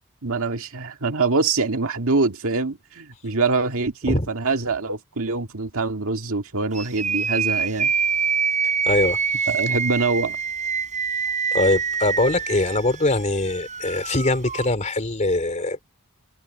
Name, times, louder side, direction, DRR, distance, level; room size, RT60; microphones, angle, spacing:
voice 1, 0.2-7.9 9.5-10.4, right 3 dB, 65° right, 2.0 m, -24 dB
sound 1, 6.7-14.7, right 6 dB, 35° right, 6.5 m, -26 dB
voice 2, 8.8-9.5 11.5-15.8, left 2 dB, 35° left, 3.0 m, -22 dB
open air
head